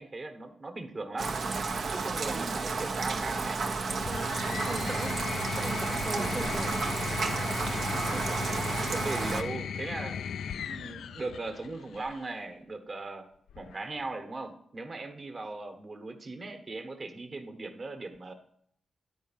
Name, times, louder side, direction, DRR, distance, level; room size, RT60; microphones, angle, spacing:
voice 1, 0.0-1.3 1.9-3.6 7.9-10.2 10.7-13.2 13.5-18.3, right 3 dB, 30° right, 6 dB, 1.4 m, -39 dB
Rain, 1.2-9.4, right 4 dB, 55° right, 0.9 m, -32 dB
sound 1, 3.9-12.3 13.5-14.1, left 7 dB, 85° left, 0.3 m, -37 dB
voice 2, 4.7-5.1 5.5-6.7, right 2 dB, 15° right, 1 dB, 1.1 m, -38 dB
10.5 x 4.7 x 7.4 m, 0.67 s
wide cardioid pair, 140°, 0 cm